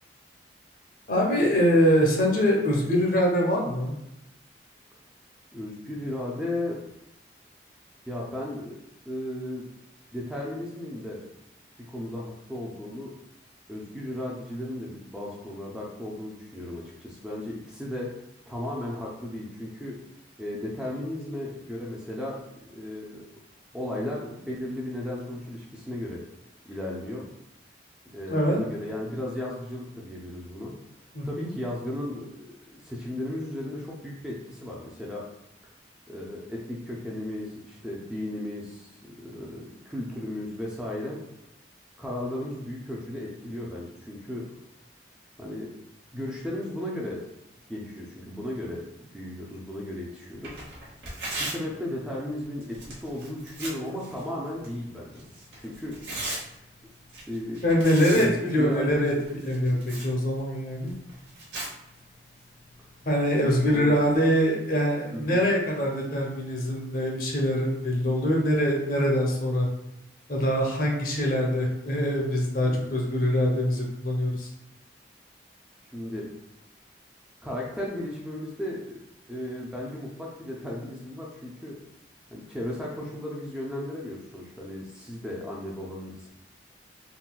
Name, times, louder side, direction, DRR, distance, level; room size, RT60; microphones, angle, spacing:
voice 1, 1.1-3.9 28.3-28.6 31.1-31.5 57.6-59.1 59.4-60.9 63.1-69.7 70.3-74.5, equal, 50° left, 0 dB, 0.6 m, -24 dB
voice 2, 5.5-6.8 8.1-8.7 9.1-9.6 10.1-11.2 11.9-13.1 13.7-20.0 20.4-23.2 23.7-26.2 26.7-27.3 28.1-30.7 31.2-32.3 32.7-35.2 36.1-41.2 42.0-44.4 45.4-45.7 46.1-47.2 47.7-50.6 51.4-56.0 57.3-57.6 58.1-59.1 63.5-64.0 65.1-65.5 72.6-73.0 75.9-76.3 77.4-79.0 79.3-81.8 82.3-86.3, left 1 dB, 5° right, -4 dB, 0.4 m, -35 dB
Tearing, 50.3-64.2, right 2 dB, 90° right, 1.0 m, -41 dB
3.8 x 2.1 x 2.3 m, 0.88 s
head